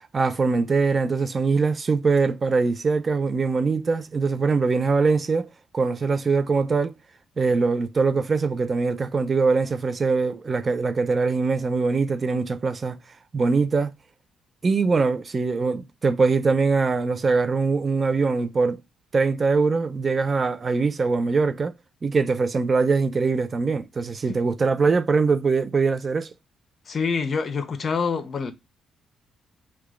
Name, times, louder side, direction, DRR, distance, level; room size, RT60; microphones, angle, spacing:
voice 1, 0.1-5.5 5.7-7.0 7.4-13.0 13.3-13.9 14.6-18.8 19.1-21.7 22.0-26.3, right 4 dB, 35° right, 0.4 m, -22 dB
voice 2, 26.9-28.5, left 5 dB, 45° left, 0.7 m, -26 dB
4.7 x 2.3 x 2.4 m
cardioid pair, 90°, 0 cm